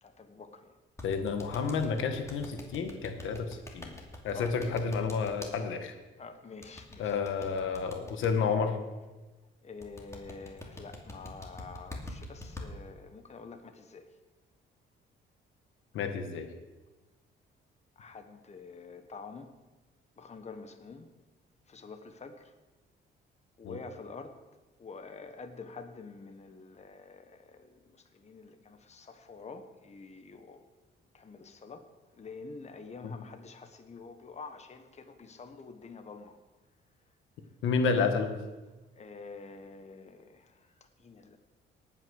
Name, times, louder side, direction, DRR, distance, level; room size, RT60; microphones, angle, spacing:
voice 1, 0.0-0.8 4.3-4.5 6.2-7.2 9.6-14.1 18.0-19.5 20.2-21.1 21.7-22.5 23.6-24.4 24.8-30.6 31.1-31.9 32.2-36.4 38.9-40.7 41.0-41.4, left 4 dB, 35° left, 7 dB, 1.2 m, -47 dB
voice 2, 1.0-3.9 4.2-5.9 7.0-8.8 15.9-16.5 23.6-23.8 33.0-33.1 37.6-38.3, left 5 dB, 80° left, 6 dB, 1.5 m, -30 dB
sound 1, 1.0-5.5 6.6-8.3 9.8-12.7, left 1 dB, 15° left, 2.6 m, -44 dB
18.0 x 6.0 x 6.4 m, 1.2 s
cardioid pair, 90°, 20 cm